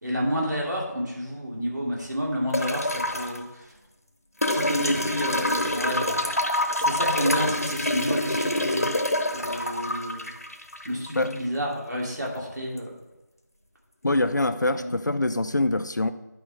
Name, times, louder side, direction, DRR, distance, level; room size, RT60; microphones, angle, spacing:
voice 1, 0.0-3.7 4.5-6.2 6.8-8.9 9.3-10.3 10.8-12.9 14.7-14.9, equal, 70° right, -3 dB, 2.8 m, -30 dB
sound 1, 2.5-3.4 4.4-11.4 12.8-12.9, left 1 dB, 55° left, 1.0 m, -26 dB
voice 2, 14.0-16.1, left 2 dB, 75° left, 11 dB, 0.6 m, -24 dB
11.0 x 5.0 x 3.4 m, 1.1 s
figure-of-eight pair, 180°, 10 cm